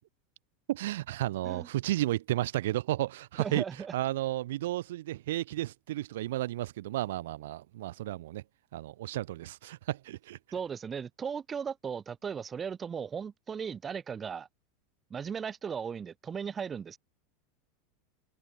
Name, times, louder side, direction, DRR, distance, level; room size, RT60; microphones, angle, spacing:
voice 1, 0.7-3.6 3.9-8.4 8.7-10.4, right 15 dB, 80° right, 1.9 m, -33 dB
voice 2, 3.4-3.9 10.5-14.5 15.1-17.0, right 7 dB, 25° right, 2.5 m, -37 dB
supercardioid pair, 115°, 0 cm